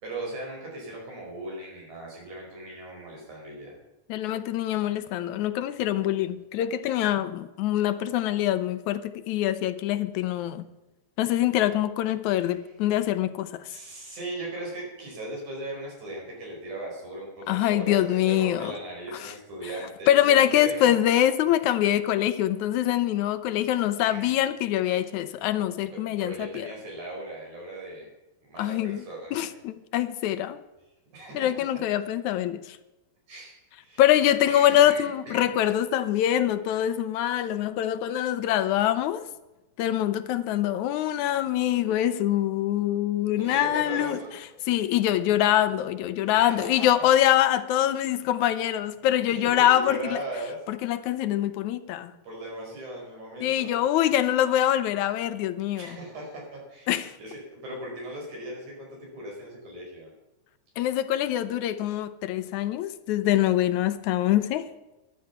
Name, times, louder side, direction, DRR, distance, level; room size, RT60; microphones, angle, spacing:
voice 1, 0.0-3.8 12.3-12.6 12.9-13.1 13.7-21.0 24.0-24.4 25.9-28.1 28.4-29.6 31.1-31.5 33.3-34.0 34.5-35.5 43.3-44.3 46.4-47.0 49.3-50.6 52.2-53.8 55.7-60.1, right 1 dB, 80° right, 6.3 m, -38 dB
voice 2, 4.1-10.7 11.2-13.6 17.5-18.7 19.2-19.3 20.1-26.7 28.6-29.0 29.3-30.6 31.3-32.8 34.0-39.2 39.8-44.2 44.7-50.2 50.7-52.1 53.4-55.9 56.9-57.1 60.8-64.7, left 12 dB, 80° left, 2.1 m, -24 dB
13.0 x 11.0 x 5.8 m
omnidirectional pair, 3.4 m